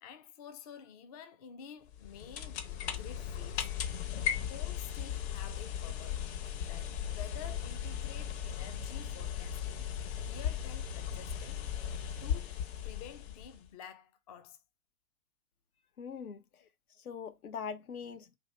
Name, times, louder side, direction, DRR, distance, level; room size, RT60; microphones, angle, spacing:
voice 1, 0.0-3.7 4.5-6.2 6.6-9.9 10.2-11.8 12.2-14.6 16.6-16.7, left 8 dB, 30° left, 0.4 m, -50 dB
sound 1, 1.9-13.7, left 9 dB, 50° left, 0.9 m, -37 dB
sound 2, 6.6-12.2, right 8 dB, 75° right, 0.6 m, -51 dB
voice 2, 16.0-16.4 17.0-18.4, left 6 dB, 80° left, 0.8 m, -42 dB
2.9 x 2.9 x 4.1 m
hypercardioid pair, 115°, 43 cm